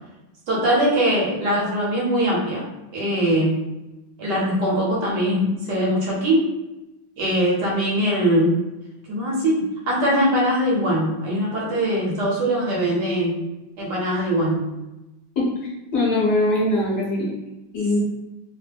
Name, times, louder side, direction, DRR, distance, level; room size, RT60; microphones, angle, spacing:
voice 1, 0.5-2.6 2.9-3.6 4.2-6.4 7.2-8.6 9.1-13.4 13.8-14.6, equal, 65° right, -5 dB, 1.3 m, -21 dB
voice 2, 15.9-17.3 17.7-18.0, left 1 dB, 65° left, -6 dB, 1.5 m, -21 dB
3.5 x 2.1 x 3.3 m, 0.99 s
omnidirectional pair, 2.2 m